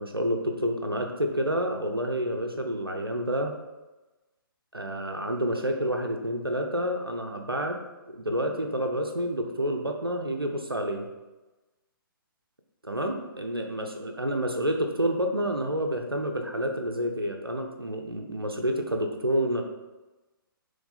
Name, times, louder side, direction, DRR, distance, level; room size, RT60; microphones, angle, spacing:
voice 1, 0.0-3.5 4.7-7.8 8.1-11.1 12.8-19.6, equal, 85° right, 3 dB, 0.8 m, -29 dB
6.8 x 3.4 x 4.1 m, 1.1 s
figure-of-eight pair, 130°, 12 cm